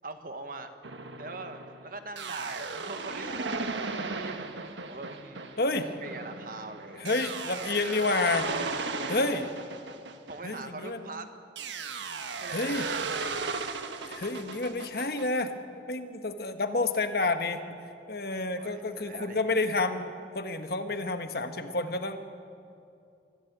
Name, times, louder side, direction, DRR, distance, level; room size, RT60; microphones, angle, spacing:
voice 1, 0.0-0.7 1.2-3.7 4.1-4.6 4.9-5.6 6.0-7.1 8.4-9.4 10.1-11.3 12.4-13.5 18.5-19.4, right 3 dB, 50° right, 7 dB, 1.5 m, -42 dB
sound 1, 0.8-11.0 11.6-15.3, right 4 dB, 85° right, 1.4 m, -36 dB
voice 2, 5.6-5.9 6.9-8.5 9.1-9.5 10.4-11.2 12.5-12.9 14.0-15.5 15.9-17.6 18.1-22.2, left 2 dB, 55° left, 8 dB, 1.4 m, -29 dB
24.5 x 15.0 x 8.2 m, 2.5 s
head